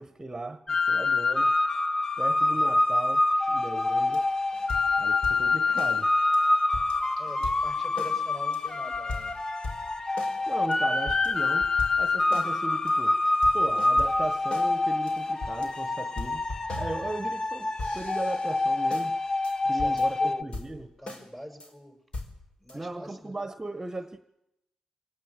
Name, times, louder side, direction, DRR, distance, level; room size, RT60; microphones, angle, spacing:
voice 1, 0.0-1.6 2.2-3.2 3.5-4.3 5.0-6.1 10.5-11.7 12.0-13.2 13.5-16.5 16.8-19.2 19.7-20.9 22.7-24.2, right 2 dB, 25° right, 1.3 m, -37 dB
sound 1, 0.7-20.4, left 2 dB, 30° left, 1.1 m, -26 dB
sound 2, 3.9-17.5 17.8-19.1 19.4-19.5 19.8-20.2 20.5-21.2 21.6-21.7 22.1-22.8, left 2 dB, 50° left, 4.8 m, -40 dB
voice 2, 7.2-9.3 19.6-22.0 22.6-23.3, equal, 15° left, 7.0 m, -44 dB
26.0 x 18.0 x 9.0 m
hypercardioid pair, 45°, 2 cm